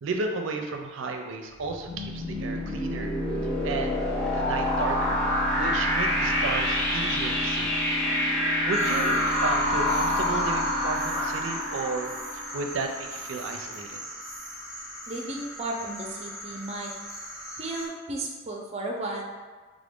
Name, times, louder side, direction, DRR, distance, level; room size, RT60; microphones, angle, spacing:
voice 1, 0.0-3.1 3.6-4.0 4.3-5.2 5.5-7.7 8.6-14.0, right 3 dB, 75° right, 4 dB, 0.5 m, -33 dB
sound 1, 1.5-13.2, left 1 dB, 55° left, 1.1 m, -27 dB
sound 2, 8.7-17.9, equal, 15° left, 0.9 m, -38 dB
voice 2, 15.1-16.9 17.6-19.2, right 2 dB, 35° right, 0 dB, 0.6 m, -34 dB
3.6 x 2.5 x 3.5 m, 1.4 s
head